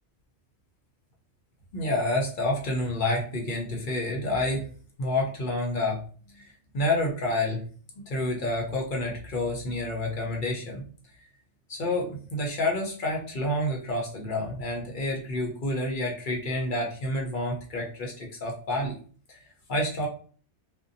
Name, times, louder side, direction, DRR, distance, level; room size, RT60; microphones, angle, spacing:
voice 1, 1.7-4.7 5.0-6.0 6.7-7.7 8.0-10.8 11.7-18.9 19.3-20.1, left 1 dB, 55° left, -1 dB, 0.7 m, -29 dB
2.6 x 2.1 x 2.5 m, 0.42 s
omnidirectional pair, 1.2 m